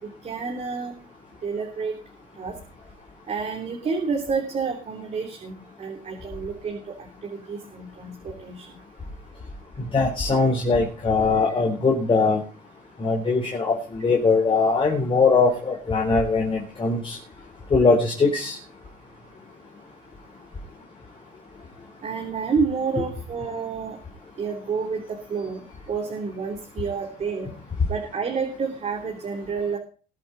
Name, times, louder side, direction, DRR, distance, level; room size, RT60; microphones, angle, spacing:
voice 1, 0.2-0.9 1.4-1.9 2.4-2.5 3.3-8.7 22.0-24.0 24.4-25.0 25.3-25.6 25.9-27.5 27.9-29.8, right 5 dB, 40° right, 1 dB, 3.5 m, -29 dB
voice 2, 9.8-12.4 13.0-17.2 17.7-18.6, left 4 dB, 30° left, -1 dB, 4.0 m, -21 dB
21.5 x 8.4 x 4.2 m, 0.38 s
cardioid pair, 110°, 17 cm